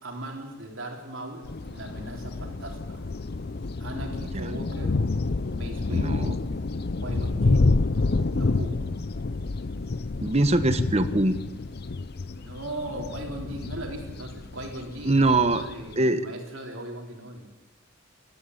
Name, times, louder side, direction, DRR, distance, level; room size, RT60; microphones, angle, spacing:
voice 1, 0.0-3.0 3.8-5.0 5.5-6.3 7.0-7.8 8.2-8.9 12.3-17.5, right 1 dB, 65° right, 1 dB, 4.3 m, -38 dB
sound 1, 1.4-15.9, left 3 dB, 50° left, 0.6 m, -28 dB
voice 2, 5.9-6.4 10.2-11.4 15.0-15.6 16.0-16.2, right 2 dB, 30° right, 10 dB, 1.0 m, -22 dB
19.0 x 14.0 x 10.0 m, 1.1 s
head